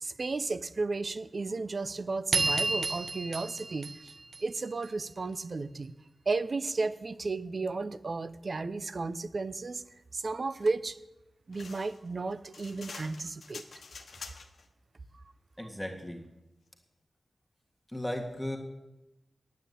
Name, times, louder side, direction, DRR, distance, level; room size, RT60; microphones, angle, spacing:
voice 1, 0.0-4.1 4.4-5.9 6.3-9.8 10.1-11.0 11.5-13.6 15.1-15.2, right 3 dB, 50° right, 15 dB, 0.7 m, -33 dB
sound 1, 2.3-4.9, right 3 dB, 85° right, 1.2 m, -31 dB
sound 2, 11.5-14.7, left 4 dB, 75° left, 1.1 m, -47 dB
voice 2, 15.6-16.2 17.9-18.6, left 1 dB, 5° left, 1 dB, 1.9 m, -35 dB
9.5 x 8.9 x 8.4 m, 0.93 s
wide cardioid pair, 80°, 0 cm